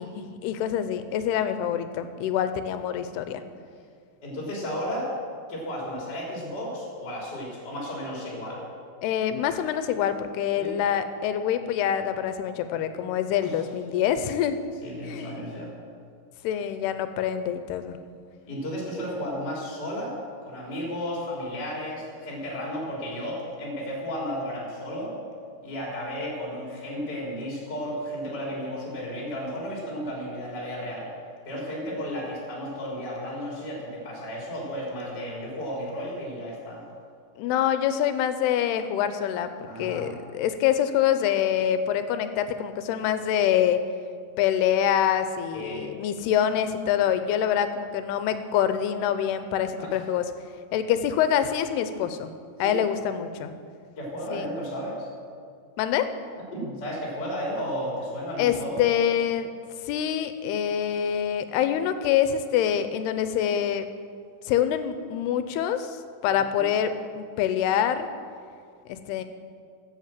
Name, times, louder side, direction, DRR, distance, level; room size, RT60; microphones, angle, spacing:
voice 1, 0.0-3.4 9.0-14.6 15.0-15.4 16.4-18.0 37.4-39.5 39.8-43.8 44.4-50.3 50.7-52.3 52.6-53.5 54.3-54.5 55.8-56.1 58.4-59.5 59.9-63.9 64.5-66.0 66.2-68.1 68.9-69.2, left 9 dB, 85° left, 10 dB, 2.7 m, -25 dB
voice 2, 4.2-5.1 5.5-8.6 10.6-10.8 13.4-13.6 14.8-15.7 18.5-20.2 20.4-25.1 25.6-31.1 31.4-36.8 39.6-40.1 45.5-45.9 49.8-49.9 52.6-52.8 54.0-55.1 56.5-58.8 66.5-66.6, equal, 25° left, -3 dB, 3.2 m, -33 dB
13.0 x 7.9 x 7.6 m, 2.2 s
omnidirectional pair, 4.7 m